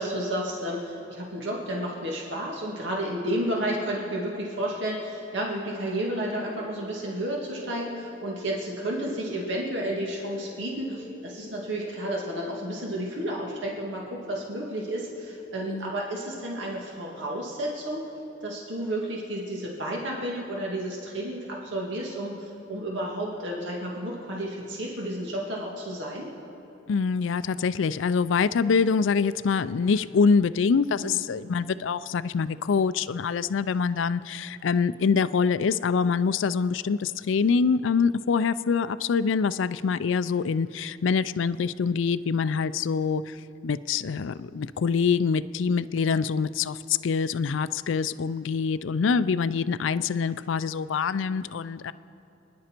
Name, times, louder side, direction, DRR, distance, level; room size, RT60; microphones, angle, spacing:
voice 1, 0.0-18.1 18.4-26.3 31.0-31.2, right 1 dB, 80° right, -2 dB, 1.9 m, -31 dB
sound 1, 6.4-16.4, left 5 dB, 15° left, 2.6 m, -47 dB
voice 2, 26.9-43.4 43.6-51.9, left 5 dB, 90° left, 15 dB, 0.4 m, -25 dB
28.0 x 10.5 x 4.4 m, 2.9 s
head